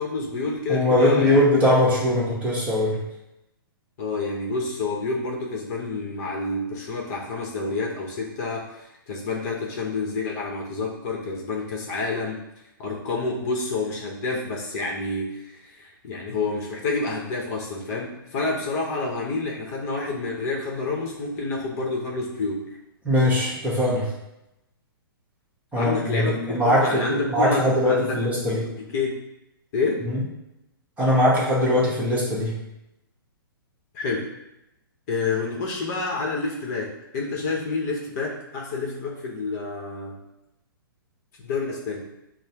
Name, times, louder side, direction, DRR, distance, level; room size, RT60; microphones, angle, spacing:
voice 1, 0.0-1.4 4.0-12.4 12.8-22.7 25.7-29.2 29.7-30.1 33.9-34.3 35.1-40.2 41.4-42.1, left 3 dB, 45° left, -1 dB, 1.0 m, -29 dB
voice 2, 0.7-3.0 23.0-24.0 25.7-28.6 31.0-32.5, left 1 dB, 10° right, -6 dB, 1.3 m, -21 dB
6.3 x 2.2 x 2.9 m, 0.89 s
hypercardioid pair, 135°, 12 cm